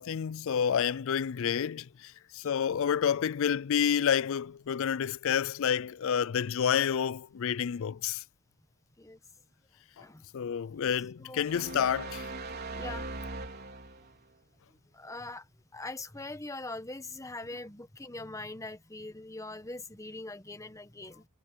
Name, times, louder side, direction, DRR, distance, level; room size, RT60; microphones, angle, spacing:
voice 1, 0.0-8.2 10.3-12.3, left 8 dB, 60° left, 0.4 m, -29 dB
sound 1, 11.5-14.2, right 2 dB, 45° right, 4.6 m, -40 dB
voice 2, 12.7-13.1 14.9-15.4 15.7-21.3, left 2 dB, 15° left, 1.1 m, -42 dB
head